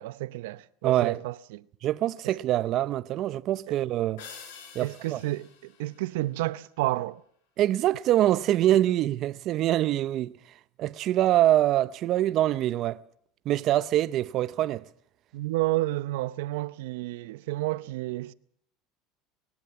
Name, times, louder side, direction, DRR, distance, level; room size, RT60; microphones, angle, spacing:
voice 1, 0.0-1.6 2.2-2.4 3.7-3.8 4.8-7.2 15.3-18.3, right 18 dB, 85° right, 0.7 m, -31 dB
voice 2, 0.8-1.2 1.8-4.2 4.7-5.2 7.6-10.3 10.8-13.0 13.5-14.8, right 13 dB, 40° right, 0.7 m, -24 dB
sound 1, 4.2-6.8, left 6 dB, 90° left, 6.8 m, -48 dB
21.0 x 17.0 x 7.1 m
cardioid pair, 155°, 0 cm